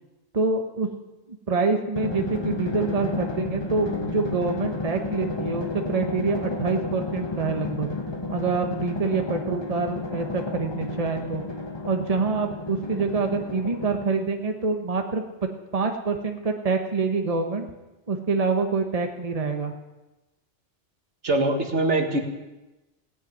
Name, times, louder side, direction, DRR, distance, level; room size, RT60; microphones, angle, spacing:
voice 1, 0.3-0.9 1.5-7.9 8.3-11.4 11.9-15.2 15.7-17.7 18.1-19.7, right 4 dB, 30° right, 4 dB, 1.3 m, -26 dB
Drum, 1.9-14.3, left 3 dB, 25° left, 1.3 m, -32 dB
voice 2, 21.2-22.2, right 2 dB, 70° right, 4 dB, 2.0 m, -22 dB
17.0 x 9.1 x 9.2 m, 1.1 s
omnidirectional pair, 1.2 m